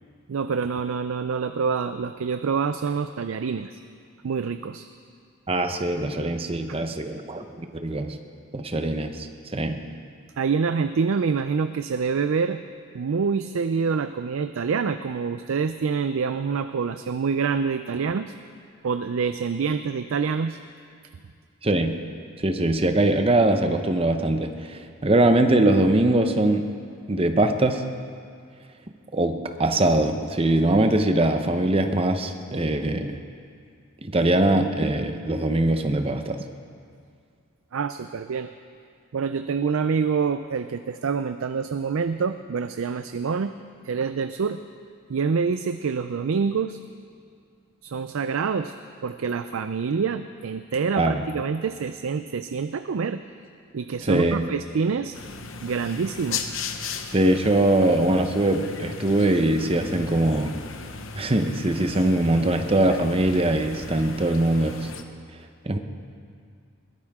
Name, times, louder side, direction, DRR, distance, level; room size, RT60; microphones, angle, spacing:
voice 1, 0.3-3.8 4.2-4.9 6.7-6.8 10.4-12.6 12.9-18.3 18.8-20.6 37.7-38.5 39.1-43.5 43.8-44.6 45.1-46.8 47.8-48.7 49.0-53.2 53.7-55.2 55.6-56.5, right 5 dB, 70° right, 10 dB, 0.4 m, -26 dB
voice 2, 5.5-8.2 8.5-9.8 21.6-22.0 22.4-26.7 27.1-27.8 29.1-33.2 34.0-36.4 51.0-51.2 54.0-54.5 57.1-60.6 61.1-64.9 65.6-65.8, right 1 dB, 25° right, 6 dB, 0.8 m, -22 dB
sound 1, 55.1-65.0, left 5 dB, 65° left, 0.9 m, -37 dB
21.5 x 16.0 x 3.6 m, 2.2 s
head